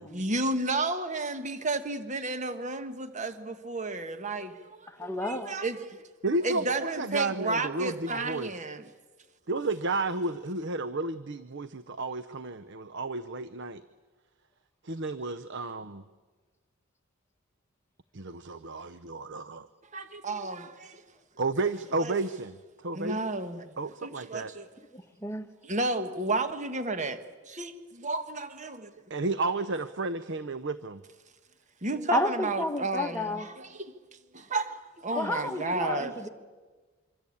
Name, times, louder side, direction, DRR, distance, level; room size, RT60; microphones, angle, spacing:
voice 1, 0.1-6.0 6.4-8.8 19.9-21.0 22.0-22.2 22.9-23.7 24.0-24.7 25.6-28.9 31.8-33.9 34.3-36.2, right 2 dB, 35° right, 1.4 m, -32 dB
voice 2, 4.9-5.5 24.9-25.5 32.1-33.5 35.1-36.3, left 1 dB, 10° left, 1.5 m, -31 dB
voice 3, 6.2-8.5 9.5-13.8 14.8-16.0 18.1-19.7 21.4-22.6 22.8-23.2 23.8-24.5 29.1-31.0, right 2 dB, 55° right, 0.7 m, -32 dB
25.5 x 25.0 x 8.6 m
head